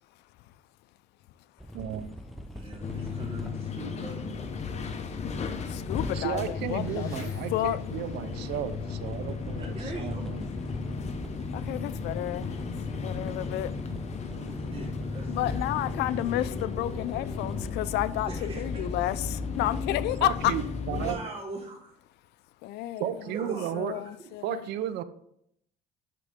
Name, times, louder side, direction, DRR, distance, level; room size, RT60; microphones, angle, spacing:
sound 1, 1.6-3.8 5.7-20.2, equal, ahead, 0.6 m, -43 dB
voice 1, 1.7-2.1 6.1-10.4 20.2-21.2 23.0-23.9 24.4-25.0, right 11 dB, 80° right, 0.6 m, -34 dB
voice 2, 2.5-4.5 9.6-10.3 14.2-15.6 18.3-18.8 20.9-21.9 23.3-24.1, right 3 dB, 35° right, 1.4 m, -41 dB
sound 2, 2.8-21.1, left 5 dB, 40° left, 0.8 m, -35 dB
sound 3, 4.4-9.0, left 1 dB, 20° left, 2.5 m, -49 dB
voice 3, 5.7-7.1 7.5-7.8 11.5-12.7 13.0-13.7 15.3-20.5 22.6-23.1 23.4-24.7, left 15 dB, 80° left, 0.4 m, -31 dB
11.0 x 3.7 x 3.5 m
cardioid pair, 110°, 17 cm